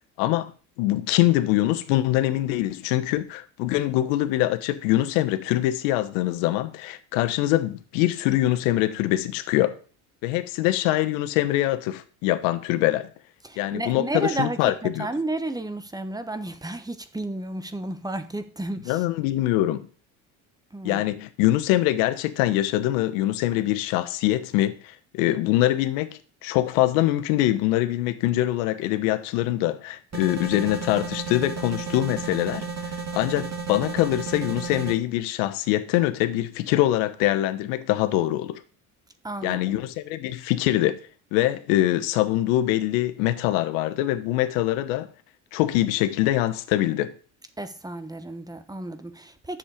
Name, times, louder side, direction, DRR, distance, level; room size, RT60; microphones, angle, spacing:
voice 1, 0.2-0.5 0.8-9.8 10.2-13.1 13.6-15.1 18.9-19.9 20.8-38.6 39.4-41.0 41.3-45.1 45.5-47.1, left 15 dB, 85° left, 1.1 m, -24 dB
voice 2, 13.4-19.0 20.7-21.0 39.2-39.8 47.6-49.6, right 2 dB, 10° right, 1.3 m, -32 dB
sound 1, 30.1-35.0, right 5 dB, 45° right, 3.5 m, -33 dB
9.9 x 7.4 x 5.1 m
supercardioid pair, 85°, 38 cm